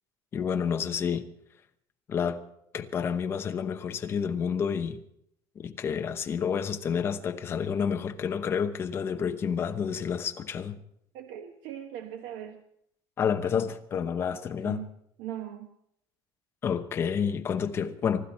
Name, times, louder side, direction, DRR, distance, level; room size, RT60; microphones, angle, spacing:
voice 1, 0.3-1.3 2.1-2.4 2.7-5.0 5.6-10.8 13.2-14.8 16.6-18.3, left 7 dB, 25° left, 0.9 m, -29 dB
voice 2, 11.1-12.6 14.6-14.9 15.2-15.8, right 11 dB, 85° right, 1.2 m, -39 dB
24.5 x 12.0 x 4.3 m
cardioid pair, 175°, 9 cm